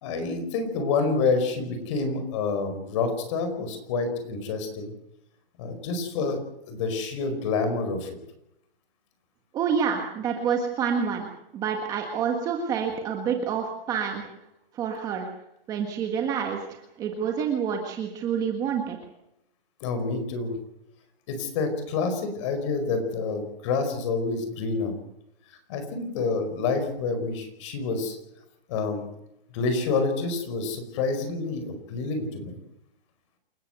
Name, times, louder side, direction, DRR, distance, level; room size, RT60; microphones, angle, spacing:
voice 1, 0.0-4.8 5.6-6.4 6.7-8.1 19.8-20.5 21.3-24.9 25.7-28.2 28.7-29.0 29.5-32.6, left 4 dB, 30° left, 8 dB, 5.0 m, -28 dB
voice 2, 9.5-11.3 11.5-14.2 14.7-15.3 15.7-19.0, right 7 dB, 10° right, 3 dB, 1.5 m, -28 dB
28.5 x 14.0 x 8.1 m, 0.82 s
hypercardioid pair, 175°, 30 cm